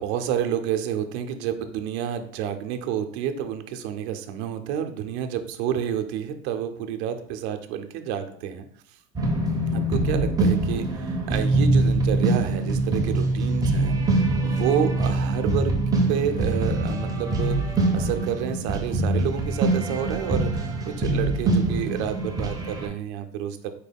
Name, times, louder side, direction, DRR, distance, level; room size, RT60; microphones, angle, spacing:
voice 1, 0.0-9.0 9.7-15.7 16.1-17.6 17.9-23.7, right 9 dB, 80° right, 7 dB, 0.6 m, -29 dB
sound 1, 9.2-22.9, right 2 dB, 10° right, 0.4 m, -24 dB
4.4 x 2.2 x 3.4 m, 0.64 s
cardioid pair, 150°, 32 cm